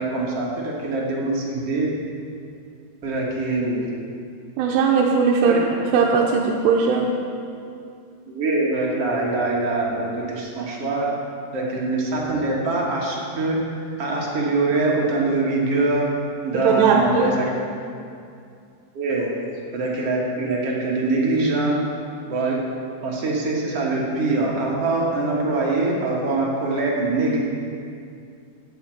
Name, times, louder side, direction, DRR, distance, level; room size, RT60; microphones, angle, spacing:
voice 1, 0.0-1.9 3.0-3.9 5.5-5.6 8.3-11.1 11.5-16.1 16.4-17.5 18.9-19.3 19.7-21.8 22.3-22.6 23.0-27.4, right 2 dB, 55° right, -3 dB, 1.8 m, -23 dB
voice 2, 4.6-5.5 5.9-7.1 16.6-17.3, right 6 dB, 90° right, -1 dB, 2.9 m, -18 dB
9.5 x 8.4 x 7.5 m, 2.4 s
omnidirectional pair, 4.8 m